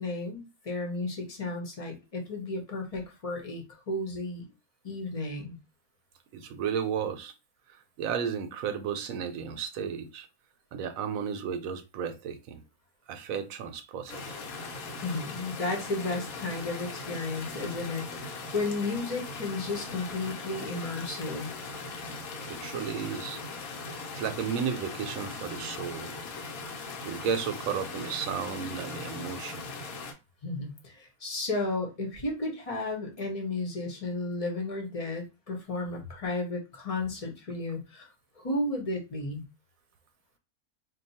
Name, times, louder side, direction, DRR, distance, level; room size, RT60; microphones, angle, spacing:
voice 1, 0.0-4.5 4.8-5.6 15.0-21.5 30.4-38.1 38.4-39.4, left 2 dB, 30° left, 0.8 m, -33 dB
voice 2, 6.3-7.3 7.7-10.3 10.7-12.6 13.1-14.2 22.5-23.4 23.9-26.2 27.0-29.6, right 7 dB, 75° right, 1.0 m, -33 dB
sound 1, 14.1-30.1, left 3 dB, 80° left, 1.1 m, -39 dB
2.6 x 2.2 x 4.0 m
omnidirectional pair, 1.5 m